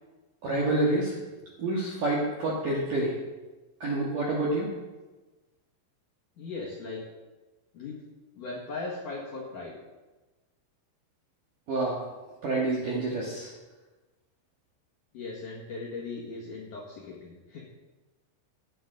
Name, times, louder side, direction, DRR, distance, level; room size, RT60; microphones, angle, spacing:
voice 1, 0.4-1.2 1.6-3.1 3.8-4.7 11.7-12.0 12.4-13.5, right 2 dB, 60° right, -4 dB, 2.4 m, -28 dB
voice 2, 6.4-7.0 7.7-8.0 8.4-9.8 15.1-17.6, left 3 dB, 55° left, -5 dB, 2.4 m, -38 dB
15.5 x 10.0 x 3.9 m, 1.2 s
omnidirectional pair, 5.9 m